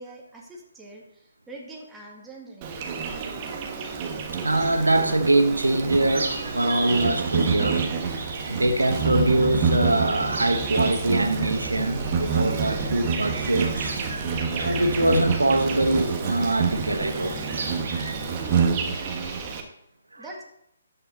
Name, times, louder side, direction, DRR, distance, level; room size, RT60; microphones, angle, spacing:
voice 1, 0.0-2.8 20.2-20.4, right 2 dB, 10° right, -2 dB, 1.9 m, -43 dB
Insect, 2.6-19.6, right 5 dB, 30° right, 1.4 m, -28 dB
voice 2, 4.3-7.9 8.4-14.0 14.5-17.4 20.1-20.2, right 1 dB, 90° right, 6 dB, 1.0 m, -23 dB
sound 1, 6.1-19.4, right 3 dB, 70° right, 2.1 m, -37 dB
13.0 x 5.5 x 4.1 m, 0.75 s
figure-of-eight pair, 140°, 0 cm